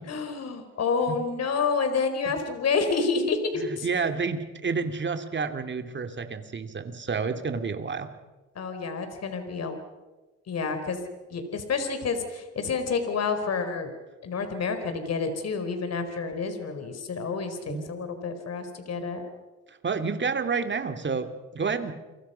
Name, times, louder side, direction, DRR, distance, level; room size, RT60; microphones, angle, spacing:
voice 1, 0.1-3.9 8.6-9.8 10.5-11.0 11.3-13.9 14.2-19.2, left 4 dB, 55° left, 7 dB, 4.3 m, -29 dB
voice 2, 3.6-8.1 17.7-17.9 19.7-21.9, right 5 dB, 40° right, 7 dB, 2.6 m, -30 dB
29.5 x 24.0 x 5.7 m, 1.2 s
cardioid pair, 90°, 30 cm